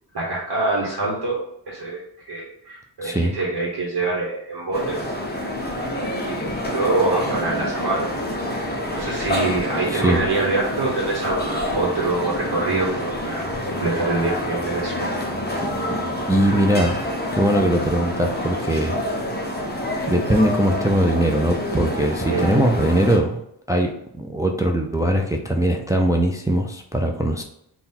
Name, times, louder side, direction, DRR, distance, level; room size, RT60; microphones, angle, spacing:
voice 1, 0.1-5.0 5.8-8.1 8.9-15.1 22.3-22.6, right 3 dB, 60° right, -4 dB, 1.1 m, -25 dB
voice 2, 3.0-3.3 9.9-10.2 15.6-16.0 16.3-17.1 17.3-19.0 20.1-23.4 23.7-23.9 24.2-27.4, right 1 dB, 10° right, 2 dB, 0.3 m, -21 dB
sound 1, 4.7-23.2, left 1 dB, 20° left, 0.7 m, -27 dB
3.7 x 2.3 x 4.2 m, 0.74 s
wide cardioid pair, 90°, 44 cm